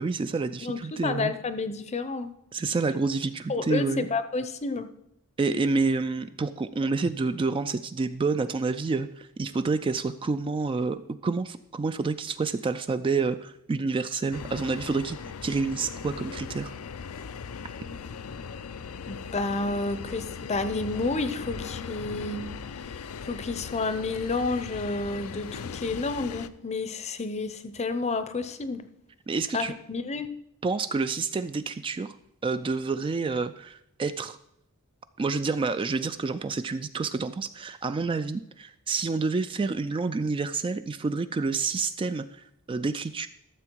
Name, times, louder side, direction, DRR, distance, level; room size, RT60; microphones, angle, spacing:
voice 1, 0.0-1.3 2.5-4.1 5.4-16.7 29.3-29.7 30.6-32.1 32.4-34.4 35.2-43.3, right 4 dB, 25° right, 11 dB, 0.3 m, -28 dB
voice 2, 0.6-2.3 3.5-4.9 19.1-22.4 23.2-28.9 29.5-30.3, left 3 dB, 30° left, 11 dB, 0.7 m, -30 dB
sound 1, 14.3-26.5, left 6 dB, 75° left, 0.5 m, -39 dB
13.5 x 7.0 x 4.6 m, 0.76 s
head